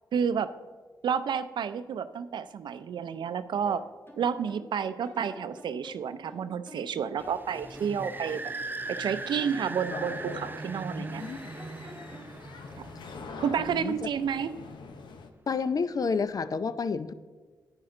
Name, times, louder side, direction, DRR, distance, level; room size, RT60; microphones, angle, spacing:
voice 1, 0.1-0.5 1.0-3.8 4.2-8.4 8.9-11.2 13.4-14.5, right 7 dB, 75° right, 13 dB, 0.5 m, -30 dB
sound 1, 3.7-4.7 5.0-6.9 7.2-9.0 9.4-11.3 11.6-12.4, left 2 dB, 30° left, 2.5 m, -48 dB
sound 2, 7.2-14.5, right 3 dB, 25° right, 0.6 m, -40 dB
sound 3, 9.9-15.3, left 5 dB, 75° left, 0.8 m, -44 dB
voice 2, 11.0-11.5 13.6-14.1 15.5-17.1, left 5 dB, 50° left, 14 dB, 0.5 m, -30 dB
10.0 x 9.7 x 3.8 m, 1.4 s
cardioid pair, 55°, 8 cm